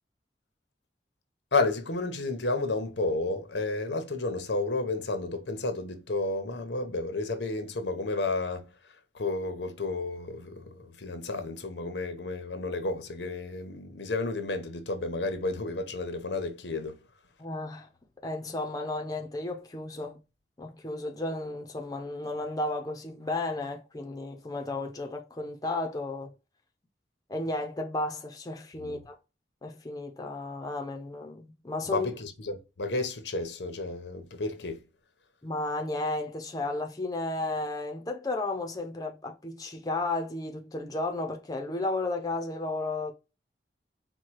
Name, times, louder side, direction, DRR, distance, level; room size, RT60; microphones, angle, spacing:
voice 1, 1.5-8.7 9.1-17.0 28.8-29.0 31.9-34.8, left 3 dB, 85° left, 0.9 m, -31 dB
voice 2, 17.4-17.9 18.2-20.2 20.6-26.3 27.3-29.2 29.6-32.1 35.4-43.1, left 2 dB, 20° left, 0.6 m, -33 dB
4.6 x 2.3 x 4.5 m
head